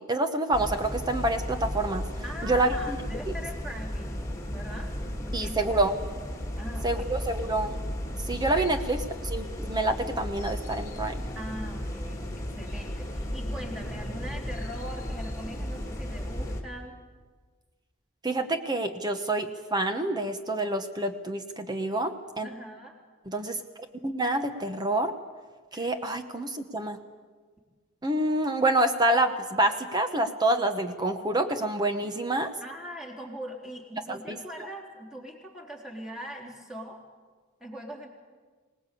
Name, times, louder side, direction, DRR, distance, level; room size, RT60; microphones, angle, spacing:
voice 1, 0.1-2.1 2.4-3.0 3.3-3.4 5.3-5.9 6.8-7.7 8.3-9.0 9.2-11.2 18.2-22.5 23.3-23.6 24.0-25.1 25.7-27.0 28.0-32.5 34.1-34.4, right 2 dB, 20° right, 7 dB, 1.0 m, -27 dB
sound 1, 0.5-16.6, equal, 15° left, 2.6 m, -34 dB
voice 2, 2.2-4.9 5.3-5.7 6.5-7.1 8.6-8.7 11.4-17.0 22.4-22.9 25.7-25.9 32.6-37.0 37.6-38.1, equal, ahead, -2 dB, 3.7 m, -41 dB
24.5 x 19.5 x 8.5 m, 1.4 s
head